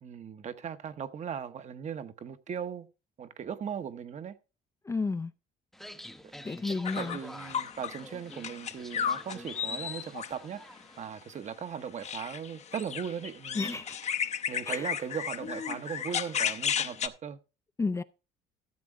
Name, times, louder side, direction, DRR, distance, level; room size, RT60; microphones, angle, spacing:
voice 1, 0.0-2.9 3.2-4.4 6.2-6.3 6.9-13.8 14.5-17.4, right 7 dB, 45° right, 1.0 m, -38 dB
voice 2, 4.8-5.3 6.4-7.2 13.6-14.0 14.7-14.9 17.8-18.0, left 3 dB, 15° left, 0.5 m, -31 dB
sound 1, 5.7-11.1, equal, ahead, 0.8 m, -48 dB
sound 2, 6.8-8.0 8.3-10.3 12.0-17.1, left 8 dB, 40° left, 0.8 m, -33 dB
13.5 x 7.5 x 3.6 m
cardioid pair, 110°, 17 cm